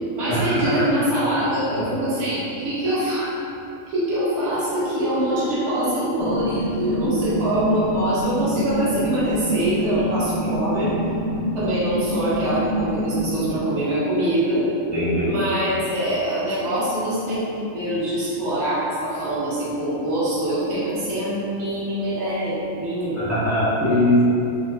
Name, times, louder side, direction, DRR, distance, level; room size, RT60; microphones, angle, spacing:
voice 1, 0.1-3.3 3.9-10.9 11.5-14.7 15.2-23.3, right 1 dB, 60° right, -10 dB, 1.2 m, -24 dB
sound 1, 6.2-13.6, right 1 dB, 75° left, 1.0 m, -26 dB
voice 2, 14.9-15.3 23.2-24.3, left 1 dB, 20° left, -11 dB, 0.4 m, -20 dB
5.2 x 2.0 x 2.2 m, 2.9 s
omnidirectional pair, 1.4 m